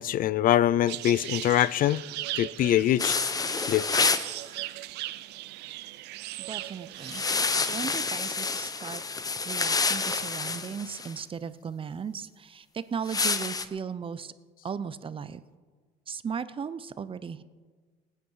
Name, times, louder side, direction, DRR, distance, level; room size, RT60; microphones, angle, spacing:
voice 1, 0.0-2.0 2.4-3.3 3.7-3.8, left 12 dB, 55° left, 0.4 m, -23 dB
sound 1, 0.9-7.8, right 16 dB, 85° right, 0.6 m, -39 dB
sound 2, 3.0-4.3 7.1-11.1 13.1-13.7, left 4 dB, 20° left, 0.8 m, -28 dB
voice 2, 6.4-7.3 7.7-14.3 14.6-15.4 16.1-17.4, right 6 dB, 30° right, 0.7 m, -37 dB
20.0 x 9.3 x 5.6 m
cardioid pair, 110°, 17 cm